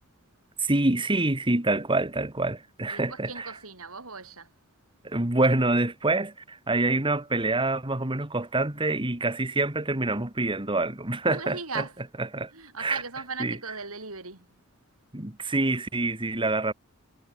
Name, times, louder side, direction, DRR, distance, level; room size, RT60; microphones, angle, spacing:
voice 1, 0.6-3.5 5.0-11.8 12.3-12.5 12.8-13.0 13.4-13.6 15.1-16.7, right 2 dB, 25° right, 2.3 m, -26 dB
voice 2, 2.9-4.5 11.3-11.9 12.5-14.6, right 4 dB, 70° right, 7.4 m, -38 dB
head